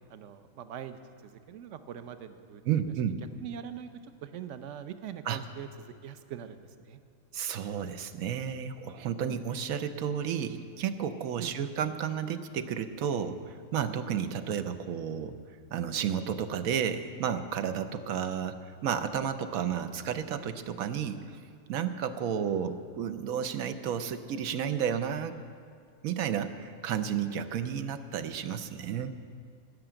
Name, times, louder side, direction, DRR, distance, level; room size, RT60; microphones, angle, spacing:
voice 1, 0.1-2.9 3.4-7.0 11.4-11.7, right 9 dB, 65° right, 10 dB, 1.0 m, -43 dB
voice 2, 2.7-3.2 5.3-5.4 7.3-15.4 15.7-18.6 18.8-21.2 21.7-25.4 26.0-29.1, right 8 dB, 90° right, 10 dB, 1.2 m, -32 dB
16.5 x 6.0 x 8.7 m, 2.2 s
omnidirectional pair, 1.4 m